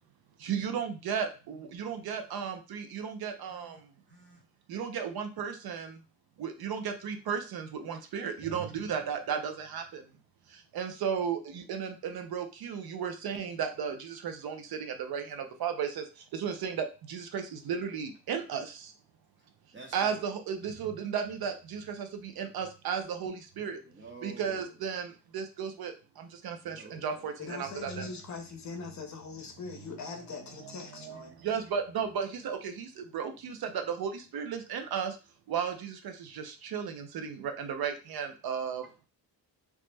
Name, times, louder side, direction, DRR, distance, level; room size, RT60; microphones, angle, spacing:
voice 1, 0.4-3.9 4.7-6.0 6.4-10.0 10.5-18.9 19.9-23.8 24.2-28.2 29.9-35.2 35.5-39.1, right 7 dB, 65° right, 0.6 m, -35 dB
voice 2, 3.5-3.8 4.1-4.4 19.7-20.2 23.8-24.7 26.6-27.4, right 3 dB, 30° right, 0.9 m, -49 dB
voice 3, 27.4-31.3, left 4 dB, 45° left, 0.7 m, -41 dB
3.1 x 2.0 x 3.2 m
cardioid pair, 120°, 40 cm